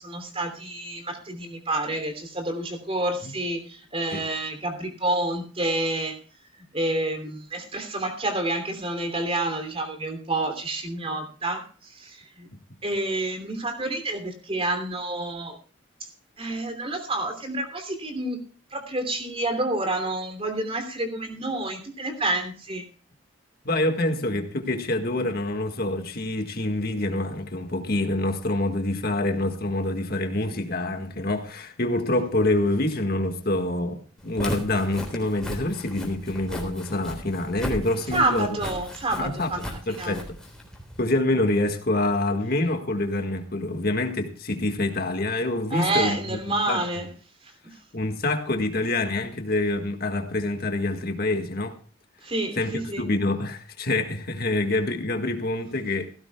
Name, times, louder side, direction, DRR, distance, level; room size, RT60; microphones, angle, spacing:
voice 1, 0.0-6.2 6.5-12.5 12.8-15.6 16.0-16.1 16.4-18.4 18.7-22.9 38.1-40.2 45.7-47.1 47.4-47.5 52.2-53.0, right 2 dB, 30° right, 3.0 m, -29 dB
voice 2, 23.6-38.5 39.2-40.4 41.0-46.4 46.7-46.8 47.9-51.8 52.6-56.1, left 2 dB, 50° left, 1.8 m, -26 dB
Walk footsteps, 34.2-41.0, equal, 5° left, 3.8 m, -36 dB
17.5 x 16.0 x 2.3 m
head